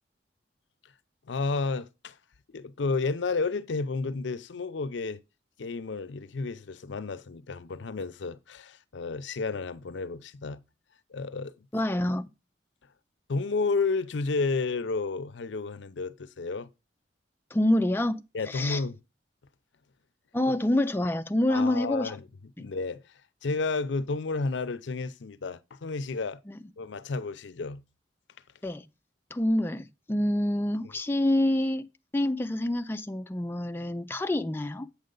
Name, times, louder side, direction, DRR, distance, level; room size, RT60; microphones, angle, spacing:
voice 1, 1.3-2.1 2.5-5.2 5.6-10.6 11.1-11.5 13.3-16.7 18.3-19.0 20.5-20.6 21.5-22.2 22.6-23.0 23.4-26.4 26.8-27.8, left 4 dB, 75° left, 0.5 m, -31 dB
voice 2, 11.7-12.3 17.5-18.8 20.3-22.2 26.5-26.6 28.6-28.8 29.3-31.9 32.1-34.9, left 1 dB, 10° left, 0.4 m, -27 dB
8.6 x 6.5 x 3.8 m
head